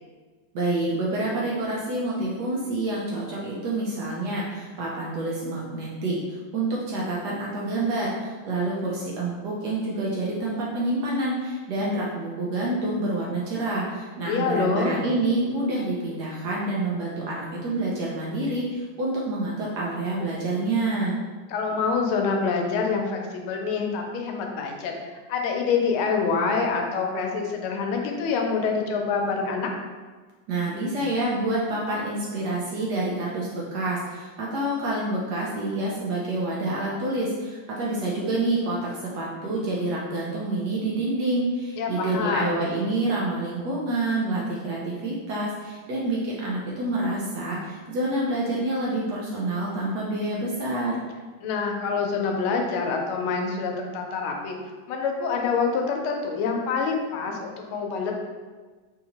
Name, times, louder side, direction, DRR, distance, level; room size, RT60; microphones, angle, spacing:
voice 1, 0.5-6.2 6.5-21.1 30.5-51.0, right 2 dB, 70° right, -5 dB, 1.0 m, -27 dB
voice 2, 14.3-15.0 21.5-29.7 41.8-42.7 51.4-54.6 54.9-58.1, left 5 dB, 90° left, 2 dB, 1.4 m, -26 dB
3.9 x 2.8 x 2.8 m, 1.4 s
omnidirectional pair, 2.2 m